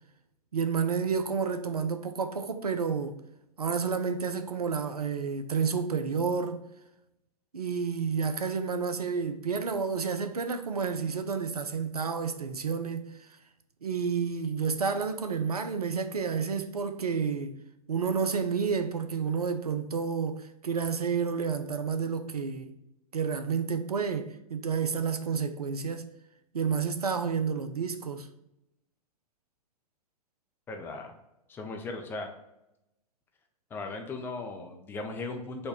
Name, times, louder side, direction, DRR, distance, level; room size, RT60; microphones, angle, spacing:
voice 1, 0.5-3.2 3.6-6.6 7.5-13.1 13.8-17.6 17.9-22.7 23.1-26.1 26.5-28.3, right 5 dB, 80° right, 0.5 m, -30 dB
voice 2, 30.7-31.1 31.5-32.3 33.7-35.7, left 3 dB, 10° left, 0.3 m, -37 dB
4.1 x 2.2 x 3.4 m
figure-of-eight pair, 105°, 19 cm